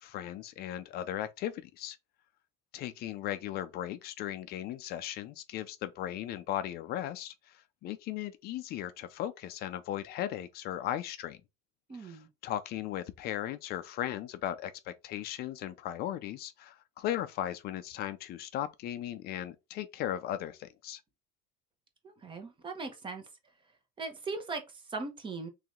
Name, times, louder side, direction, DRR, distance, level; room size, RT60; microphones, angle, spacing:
voice 1, 0.0-2.0 2.7-11.4 11.9-21.0, left 12 dB, 50° left, 0.5 m, -37 dB
voice 2, 11.9-12.3 22.0-23.3 24.0-25.5, right 3 dB, 25° right, 1.0 m, -39 dB
3.2 x 2.9 x 3.6 m
supercardioid pair, 125°, 21 cm